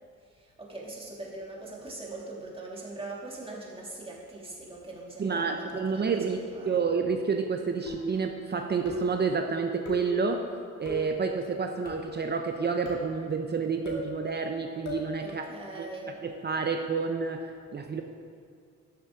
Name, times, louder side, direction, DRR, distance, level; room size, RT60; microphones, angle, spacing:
voice 1, 0.3-6.1 6.3-6.8 15.2-16.2, right 2 dB, 20° right, -4 dB, 2.6 m, -41 dB
voice 2, 5.2-6.4 6.7-10.4 10.8-15.4 15.8-15.9 16.2-18.0, right 5 dB, 35° right, 4 dB, 0.7 m, -29 dB
sound 1, 7.9-8.3 8.8-9.2 9.8-10.2 10.8-11.2 11.9-12.2 12.8-13.1 13.8-14.1 14.8-15.1, equal, 70° left, 2.9 m, -37 dB
13.5 x 7.3 x 3.7 m, 2.3 s
cardioid pair, 90°, 30 cm